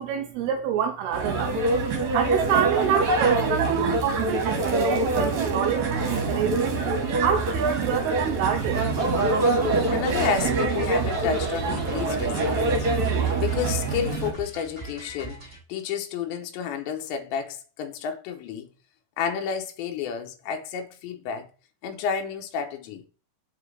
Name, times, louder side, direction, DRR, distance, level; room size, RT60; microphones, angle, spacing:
voice 1, 0.0-1.6 2.1-6.8 7.2-8.8, right 8 dB, 85° right, 2.4 m, -27 dB
sound 1, 1.1-14.3, right 3 dB, 55° right, 2.3 m, -25 dB
sound 2, 8.8-15.6, right 2 dB, 10° right, 2.0 m, -41 dB
voice 2, 9.9-18.7 19.2-21.5 21.8-23.1, left 7 dB, 90° left, 3.2 m, -31 dB
7.6 x 6.4 x 3.3 m
omnidirectional pair, 4.9 m